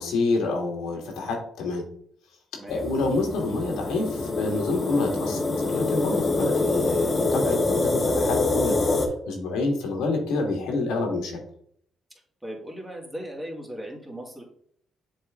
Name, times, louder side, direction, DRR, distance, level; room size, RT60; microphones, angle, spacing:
voice 1, 0.0-1.8 2.7-8.8 9.3-11.4, left 3 dB, 90° left, 2 dB, 1.7 m, -27 dB
sound 1, 2.7-9.1, left 2 dB, 25° left, 1.2 m, -25 dB
voice 2, 12.4-14.4, right 1 dB, 10° right, -1 dB, 2.2 m, -37 dB
7.3 x 3.7 x 3.6 m, 0.64 s
cardioid pair, 90°, 0 cm